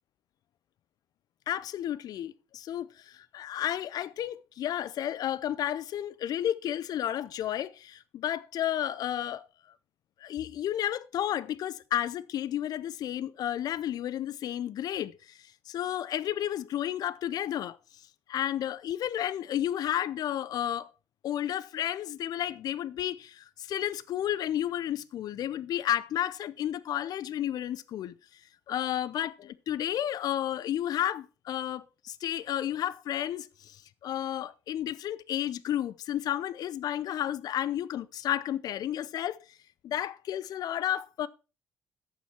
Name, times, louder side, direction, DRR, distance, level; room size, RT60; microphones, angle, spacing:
voice 1, 1.5-9.4 10.2-15.4 15.7-17.8 18.3-20.9 21.2-28.1 28.7-39.4 39.8-41.3, left 11 dB, 65° left, 0.6 m, -32 dB
12.0 x 7.2 x 4.3 m
hypercardioid pair, 45°, 7 cm